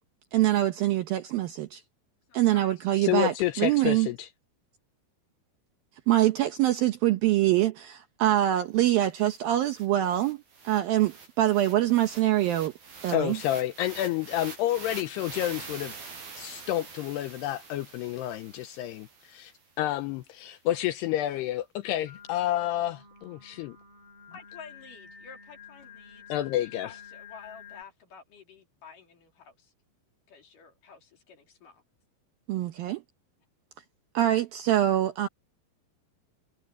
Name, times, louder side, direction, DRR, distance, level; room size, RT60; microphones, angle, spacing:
voice 1, 0.3-1.8 2.3-4.1 6.1-12.7 13.0-13.4 32.5-33.0 34.1-35.3, right 14 dB, 75° right, 2.2 m, -24 dB
voice 2, 2.3-2.8 24.3-26.3 26.6-29.7 30.3-31.8, left 6 dB, 50° left, 4.5 m, -50 dB
voice 3, 3.0-4.3 13.1-15.9 16.4-19.5 19.8-23.8 26.3-26.9, left 13 dB, 80° left, 2.6 m, -29 dB
sound 1, 8.9-9.0 9.2-19.6, right 5 dB, 55° right, 7.4 m, -46 dB
Singing, 22.1-27.8, left 6 dB, 15° left, 3.0 m, -50 dB
omnidirectional pair, 5.2 m